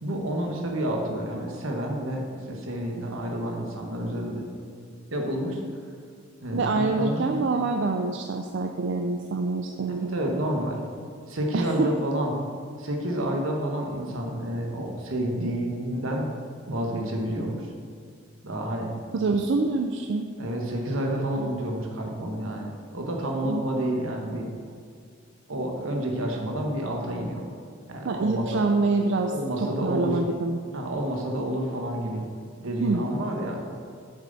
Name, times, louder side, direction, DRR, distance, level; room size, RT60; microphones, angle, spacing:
voice 1, 0.0-4.4 5.1-5.6 6.4-7.2 10.0-10.8 11.3-12.4 12.8-16.3 16.6-17.7 18.4-18.9 20.4-24.5 25.5-27.4 27.9-28.6 29.3-30.2 30.7-32.2 32.6-33.6, right 1 dB, 80° right, 1 dB, 1.3 m, -29 dB
voice 2, 6.5-10.2 11.5-11.9 19.1-20.3 23.5-23.6 28.1-30.6 32.8-33.1, right 3 dB, 60° right, 4 dB, 0.4 m, -26 dB
7.5 x 7.1 x 4.1 m, 2.2 s
head